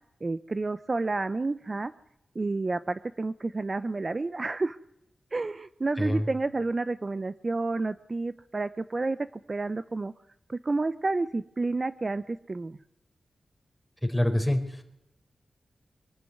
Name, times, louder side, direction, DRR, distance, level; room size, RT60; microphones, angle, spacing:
voice 1, 0.2-1.9 2.3-4.8 5.3-10.1 10.5-12.8, right 3 dB, 40° right, 13 dB, 0.7 m, -30 dB
voice 2, 6.0-6.3 14.0-14.8, left 1 dB, ahead, 3 dB, 4.3 m, -26 dB
23.5 x 12.5 x 9.5 m, 0.85 s
cardioid pair, 65°, 0 cm